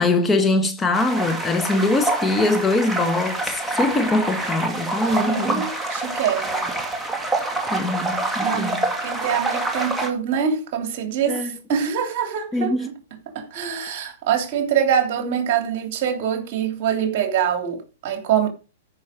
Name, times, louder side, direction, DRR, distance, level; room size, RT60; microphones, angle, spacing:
voice 1, 0.0-5.6 7.7-8.9 11.3-11.5 12.5-12.9, left 2 dB, 15° left, 1.5 m, -22 dB
sound 1, 0.9-10.1, right 2 dB, 5° right, 2.4 m, -26 dB
voice 2, 5.1-6.7 8.4-8.7 9.0-12.7 13.3-18.5, right 8 dB, 50° right, 3.1 m, -24 dB
14.0 x 6.2 x 5.2 m
hypercardioid pair, 120°, 0 cm